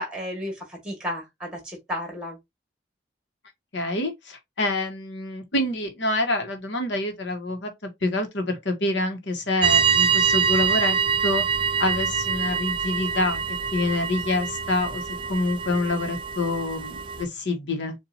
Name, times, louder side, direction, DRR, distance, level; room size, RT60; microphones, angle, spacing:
voice 1, 0.0-2.4, left 1 dB, 5° right, 1.8 m, -33 dB
voice 2, 3.7-11.0 11.2-11.4 11.8-13.4 13.7-15.0 15.3-17.9, left 2 dB, 75° left, 1.2 m, -26 dB
sound 1, 9.6-17.2, right 6 dB, 25° right, 0.4 m, -25 dB
7.0 x 2.6 x 2.8 m
head